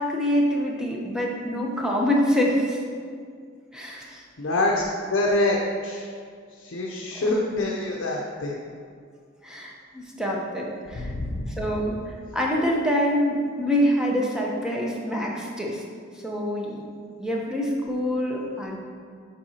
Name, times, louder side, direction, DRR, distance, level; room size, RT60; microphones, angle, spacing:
voice 1, 0.0-2.8 3.7-4.2 7.1-7.3 9.4-11.1 11.5-15.8 16.2-16.8 17.2-18.8, equal, 5° right, -2 dB, 0.7 m, -25 dB
voice 2, 4.4-6.1 6.5-8.6 10.9-11.7, left 2 dB, 70° left, -1 dB, 0.6 m, -26 dB
7.7 x 4.7 x 2.8 m, 2.1 s
head